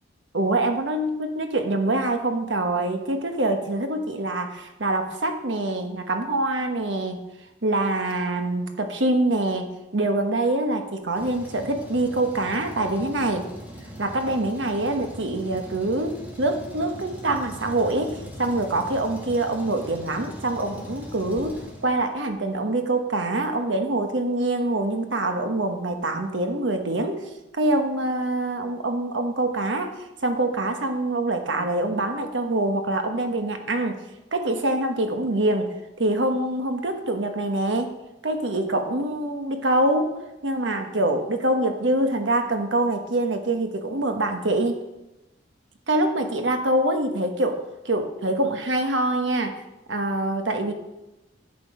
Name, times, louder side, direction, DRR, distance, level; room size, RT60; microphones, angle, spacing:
voice 1, 0.3-7.2 7.6-13.4 14.0-27.2 27.5-34.0 34.3-35.7 36.0-37.9 38.2-40.1 40.4-44.8 45.9-49.6 49.9-50.7, right 2 dB, 85° right, 6 dB, 1.2 m, -25 dB
Truck, 11.1-22.3, equal, 10° right, 2.2 m, -40 dB
10.5 x 7.5 x 4.9 m, 0.97 s
head